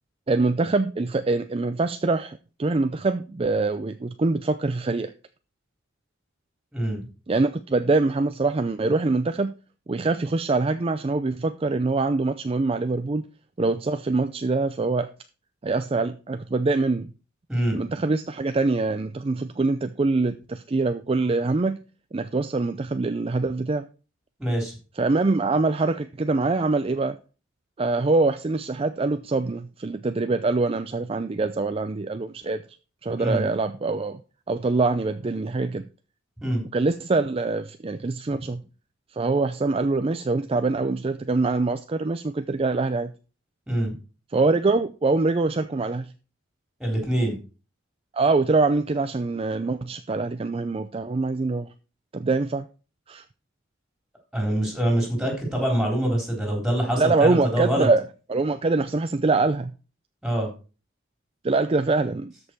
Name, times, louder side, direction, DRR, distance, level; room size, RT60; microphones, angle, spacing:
voice 1, 0.3-5.1 7.3-9.5 9.9-13.2 13.6-15.1 15.6-17.1 17.7-21.8 22.1-23.9 25.0-27.2 27.8-32.6 33.0-34.2 34.5-35.8 36.7-38.6 39.1-43.1 44.3-46.1 48.1-51.7 52.1-52.7 53.1-53.2 57.0-58.0 58.3-59.7 61.4-62.3, right 3 dB, 30° right, 0.4 m, -24 dB
voice 2, 24.4-24.7 33.2-33.4 36.4-36.6 38.3-38.4 43.7-43.9 46.8-47.3 54.3-57.9 60.2-60.5, right 1 dB, 5° right, 3.8 m, -25 dB
13.0 x 5.4 x 4.5 m
head